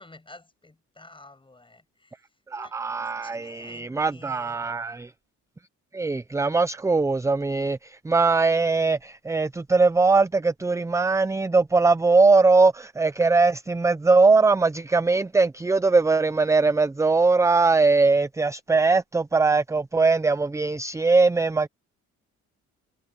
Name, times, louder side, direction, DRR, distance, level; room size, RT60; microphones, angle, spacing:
voice 1, 0.0-4.6, left 2 dB, 15° left, 6.5 m, -51 dB
voice 2, 2.5-5.1 5.9-21.7, right 3 dB, 10° right, 0.5 m, -21 dB
cardioid pair, 90°, 30 cm